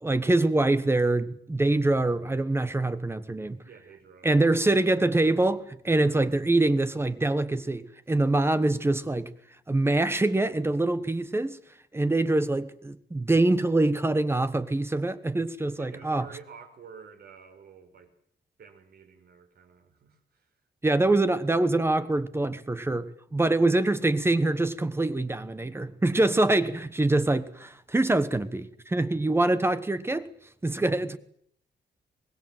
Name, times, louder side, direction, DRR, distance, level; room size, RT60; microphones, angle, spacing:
voice 1, 0.0-3.6 4.2-9.3 9.7-11.6 11.9-16.3 20.8-30.3 30.6-31.2, right 2 dB, 15° right, 1.1 m, -24 dB
voice 2, 3.7-4.3 11.0-11.1 15.8-18.1 18.6-20.5, right 6 dB, 60° right, 5.1 m, -49 dB
25.0 x 20.0 x 7.7 m
wide cardioid pair, 170°, 18 cm